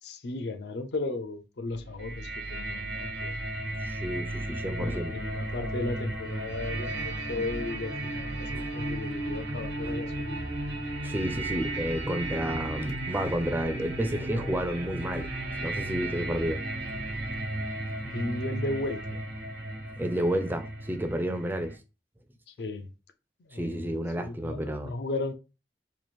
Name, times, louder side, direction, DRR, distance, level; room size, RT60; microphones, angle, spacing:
voice 1, 0.0-3.3 4.7-10.5 18.0-19.2 22.5-22.9 23.4-25.3, left 2 dB, 65° left, 0.5 m, -35 dB
sound 1, 1.7-17.4, right 2 dB, 70° right, 0.5 m, -44 dB
sound 2, 2.0-21.8, right 1 dB, 90° right, 1.1 m, -35 dB
voice 2, 3.8-5.1 11.0-15.3 15.6-16.6 20.0-21.7 23.5-24.9, equal, 10° right, 0.4 m, -31 dB
2.9 x 2.5 x 4.2 m
head